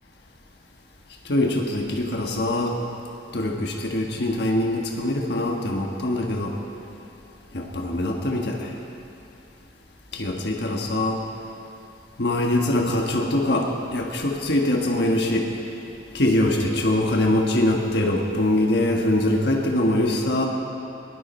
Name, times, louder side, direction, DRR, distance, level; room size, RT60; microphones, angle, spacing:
voice 1, 1.2-2.8 3.3-6.5 7.5-8.7 10.1-11.2 12.2-15.5 16.1-20.5, left 1 dB, 60° left, 1 dB, 1.4 m, -23 dB
20.5 x 16.0 x 4.4 m, 2.8 s
head